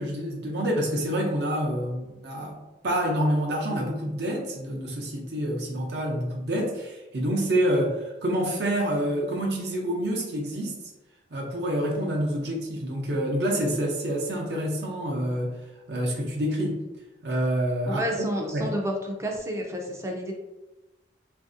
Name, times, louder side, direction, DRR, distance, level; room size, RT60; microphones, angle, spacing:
voice 1, 0.0-10.8 11.3-15.6 15.9-16.8 17.2-18.3 18.5-18.7, equal, 65° right, -2 dB, 0.6 m, -27 dB
voice 2, 17.9-18.9 19.2-20.3, right 1 dB, 15° right, 1 dB, 0.4 m, -30 dB
3.0 x 2.6 x 2.5 m, 1.0 s
head